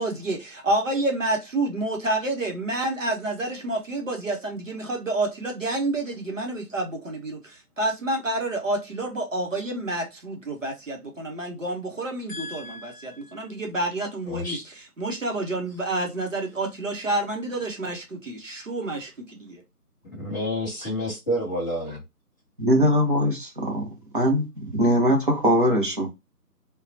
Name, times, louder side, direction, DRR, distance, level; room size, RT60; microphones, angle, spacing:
voice 1, 0.0-14.6 15.0-19.0 19.4-19.6, right 2 dB, 55° right, 1.1 m, -29 dB
voice 2, 12.3-13.5 14.3-14.6 20.1-22.0, equal, 10° left, 1.1 m, -30 dB
voice 3, 22.6-23.8 24.1-24.4 24.7-26.1, equal, 35° right, 0.9 m, -21 dB
3.7 x 2.2 x 2.7 m
figure-of-eight pair, 160°, 47 cm